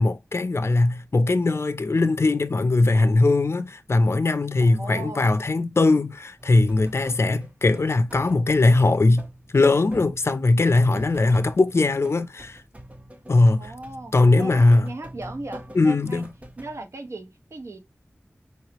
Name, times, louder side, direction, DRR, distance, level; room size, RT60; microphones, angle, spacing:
voice 1, 0.0-9.3 9.5-12.6 13.3-13.7 14.1-14.9 15.7-16.3, left 2 dB, 65° left, 0.6 m, -20 dB
voice 2, 4.6-5.3 13.6-14.1 14.4-16.3 16.6-17.8, right 2 dB, 80° right, 1.2 m, -37 dB
sound 1, 6.4-16.8, right 1 dB, 30° right, 1.2 m, -45 dB
4.7 x 3.3 x 2.9 m
wide cardioid pair, 65°, 5 cm